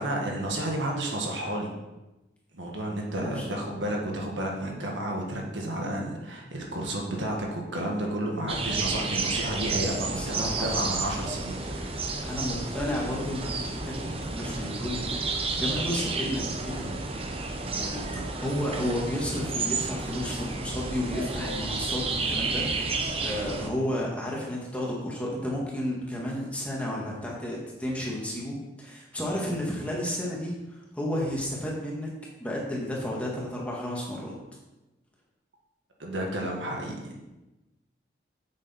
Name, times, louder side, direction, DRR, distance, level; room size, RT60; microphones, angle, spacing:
voice 1, 0.0-1.7 2.5-11.9 18.0-18.3 36.0-37.2, right 1 dB, 80° right, 0 dB, 1.9 m, -31 dB
sound 1, 8.5-23.7, right 3 dB, 30° right, 0.8 m, -31 dB
voice 2, 10.1-10.9 12.2-15.2 15.6-17.0 17.8-32.1 32.4-34.3, left 1 dB, 5° left, -3 dB, 1.8 m, -32 dB
8.5 x 7.5 x 4.4 m, 1.0 s
head